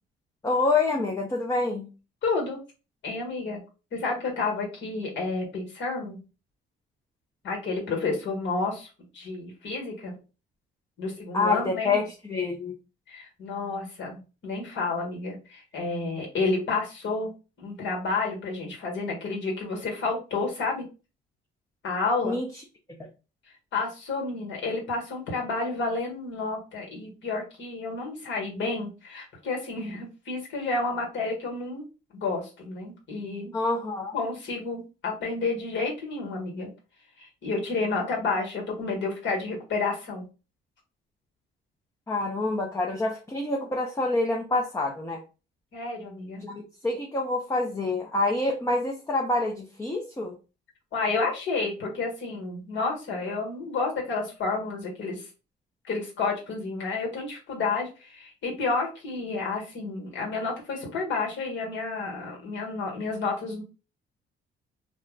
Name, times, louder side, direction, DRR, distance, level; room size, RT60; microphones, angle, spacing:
voice 1, 0.4-1.9 11.3-12.7 22.2-22.5 33.5-34.1 42.1-45.2 46.4-50.4, left 2 dB, 15° left, 0 dB, 0.5 m, -27 dB
voice 2, 2.2-2.6 3.0-3.6 3.9-6.2 7.4-8.9 9.1-10.1 11.0-12.0 13.1-17.3 17.6-20.8 21.8-22.4 23.7-31.8 32.1-33.5 34.1-36.7 37.2-40.2 45.7-46.5 50.9-55.2 55.9-63.6, left 3 dB, 65° left, 0 dB, 1.3 m, -30 dB
2.4 x 2.1 x 3.6 m, 0.32 s
cardioid pair, 90°, 20 cm